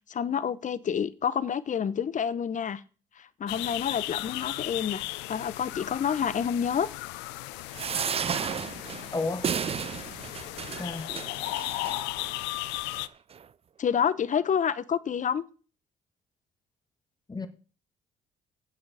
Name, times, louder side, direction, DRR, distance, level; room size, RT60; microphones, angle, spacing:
voice 1, 0.1-2.8 3.2-5.0 5.3-6.9 13.8-15.4, left 7 dB, 45° left, 0.9 m, -28 dB
sound 1, 3.5-13.1, left 19 dB, 80° left, 0.5 m, -36 dB
sound 2, 7.7-12.3 12.9-13.0 13.3-13.4, right 7 dB, 35° right, 0.4 m, -33 dB
voice 2, 9.1-9.5 10.8-11.2 17.3-17.5, left 3 dB, 20° left, 1.7 m, -32 dB
8.0 x 7.9 x 6.8 m
hypercardioid pair, 55°, 18 cm